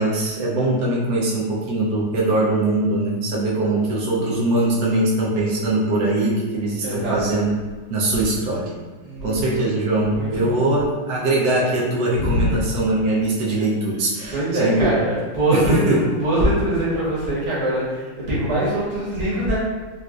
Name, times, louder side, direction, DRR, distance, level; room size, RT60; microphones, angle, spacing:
voice 1, 0.0-7.5 7.9-8.7 9.2-14.9 15.5-16.0, right 2 dB, 80° right, -5 dB, 0.8 m, -21 dB
voice 2, 6.8-7.2 8.1-8.3 9.0-9.4 10.0-10.7 12.2-12.6 14.3-19.6, right 1 dB, 45° right, -9 dB, 1.0 m, -23 dB
3.9 x 2.4 x 2.4 m, 1.3 s
omnidirectional pair, 2.4 m